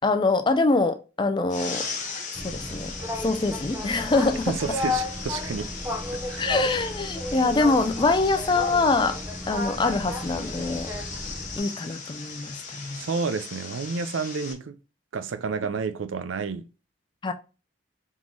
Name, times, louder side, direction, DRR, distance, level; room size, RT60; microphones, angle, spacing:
voice 1, 0.0-1.9 2.3-2.9 3.2-4.5 6.4-9.2 9.5-10.9 11.6-13.0 17.2-17.3, left 3 dB, 25° left, 0.4 m, -24 dB
sound 1, 1.5-14.5, left 5 dB, 40° left, 0.8 m, -38 dB
Boat Water vehicle, 2.3-11.6, left 2 dB, 10° right, 0.8 m, -33 dB
voice 2, 4.5-6.4 12.9-14.8 15.1-16.6, right 5 dB, 90° right, 0.5 m, -30 dB
3.7 x 3.1 x 3.9 m
head